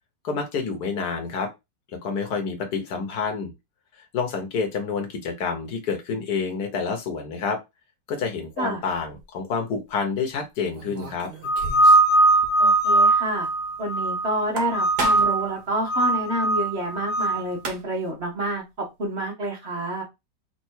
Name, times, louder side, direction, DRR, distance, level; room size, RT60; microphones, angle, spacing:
voice 1, 0.2-1.5 1.9-3.5 4.0-7.6 8.1-11.3, left 5 dB, 65° left, 3 dB, 1.7 m, -28 dB
sound 1, 8.9-9.2 10.7-12.1 12.4-12.5 12.8-12.9 14.3-15.5 17.2-17.3 17.5-18.1, right 3 dB, 65° right, 1.7 m, -33 dB
sound 2, 11.4-14.3 14.7-15.5 15.8-17.4, right 2 dB, 85° left, 1.4 m, -20 dB
voice 2, 12.6-13.5 13.8-18.6 19.0-20.0, right 1 dB, 40° right, 1 dB, 1.2 m, -28 dB
4.6 x 2.6 x 4.5 m, 0.22 s
omnidirectional pair, 1.9 m